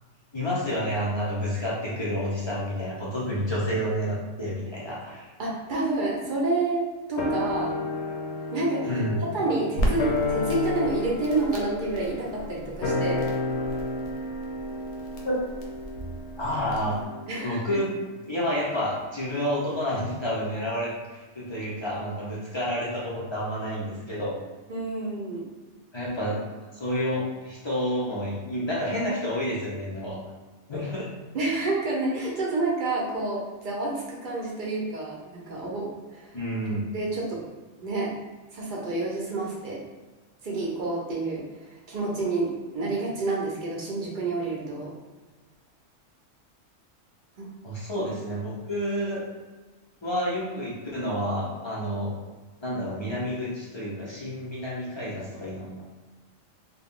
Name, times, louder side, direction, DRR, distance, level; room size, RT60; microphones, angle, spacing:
voice 1, 0.3-5.3 8.9-9.2 15.2-15.4 16.4-17.0 17.4-17.9 18.2-24.3 25.9-26.4 26.7-30.2 30.7-31.1 36.3-36.9 47.6-49.2 50.0-52.1 52.6-55.8, equal, 45° left, -6 dB, 0.3 m, -29 dB
voice 2, 5.4-7.7 8.5-9.0 9.3-13.3 17.3-17.8 24.7-25.4 31.3-36.4 36.9-37.4 37.8-38.1 38.5-39.8 40.4-44.9 47.4-47.5 48.0-48.1, right 2 dB, 50° right, -4 dB, 0.7 m, -29 dB
sound 1, 7.2-17.8 18.1-18.2, left 2 dB, 65° left, 0.8 m, -32 dB
Crackle, 9.8-17.1, right 1 dB, 90° left, 1.0 m, -35 dB
2.6 x 2.2 x 3.5 m, 1.3 s
omnidirectional pair, 1.3 m